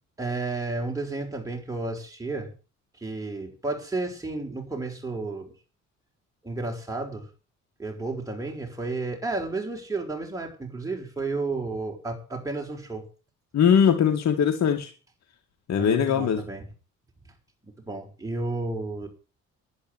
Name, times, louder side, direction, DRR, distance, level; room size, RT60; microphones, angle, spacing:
voice 1, 0.2-2.5 3.0-5.5 6.4-7.3 7.8-13.0 15.8-16.7 17.9-19.1, right 3 dB, 10° right, 0 dB, 5.6 m, -32 dB
voice 2, 13.5-14.9 15.7-16.4, left 8 dB, 60° left, 4 dB, 2.2 m, -21 dB
11.0 x 10.5 x 9.3 m, 0.36 s
cardioid pair, 90°, 30 cm